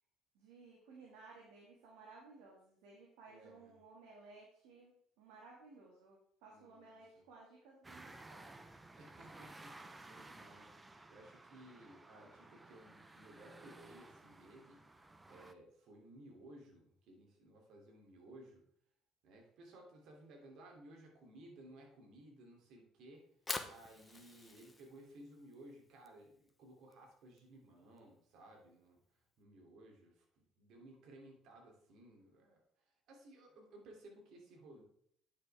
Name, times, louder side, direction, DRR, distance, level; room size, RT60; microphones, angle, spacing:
voice 1, 0.3-8.5, right 3 dB, 85° right, -2 dB, 2.1 m, -58 dB
voice 2, 3.3-3.7 6.5-7.2 9.0-14.8 15.3-18.6 19.2-23.3 23.6-34.8, right 1 dB, 65° right, 0 dB, 2.9 m, -58 dB
sound 1, 7.8-15.5, right 2 dB, 15° right, 0.8 m, -56 dB
Fire, 23.2-29.4, left 2 dB, 15° left, 1.0 m, -49 dB
9.8 x 6.7 x 3.5 m, 0.66 s
supercardioid pair, 85°, 0 cm